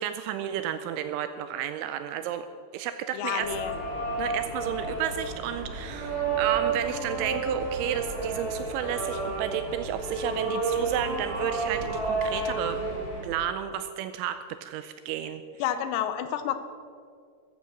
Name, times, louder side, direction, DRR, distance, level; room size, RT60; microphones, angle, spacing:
voice 1, 0.0-2.5 2.7-3.5 4.2-12.8 13.2-15.4, right 10 dB, 85° right, 10 dB, 2.8 m, -32 dB
voice 2, 3.1-3.7 15.6-16.6, left 10 dB, 85° left, 10 dB, 3.6 m, -29 dB
sound 1, 3.4-13.2, right 3 dB, 25° right, 5.5 m, -31 dB
14.0 x 12.0 x 6.5 m, 2.2 s
omnidirectional pair, 5.9 m